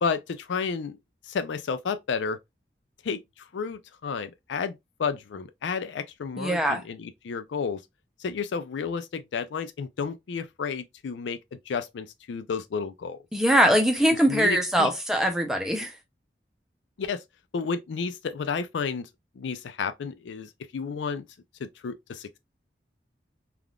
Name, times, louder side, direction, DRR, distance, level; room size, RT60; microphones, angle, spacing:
voice 1, 0.0-1.0 1.3-2.4 3.0-7.8 8.2-13.2 14.3-14.9 17.0-17.2 17.5-19.1 19.4-21.3 21.6-22.4, left 5 dB, 85° left, 0.4 m, -31 dB
voice 2, 6.4-6.8 13.3-16.0, equal, 5° right, 0.5 m, -22 dB
3.4 x 2.4 x 2.3 m
head